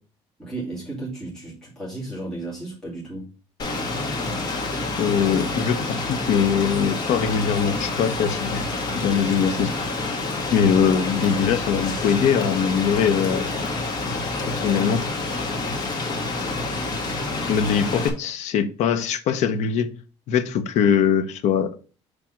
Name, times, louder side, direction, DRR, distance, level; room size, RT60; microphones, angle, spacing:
voice 1, 0.4-3.3, right 2 dB, 5° left, 2.1 m, -34 dB
Rain, 3.6-18.1, left 2 dB, 35° left, 1.5 m, -28 dB
voice 2, 5.0-8.6 9.0-9.7 10.5-13.5 14.5-15.0 17.4-19.9 20.3-21.7, left 7 dB, 70° left, 0.8 m, -22 dB
6.1 x 3.4 x 5.8 m
cardioid pair, 145°, 12 cm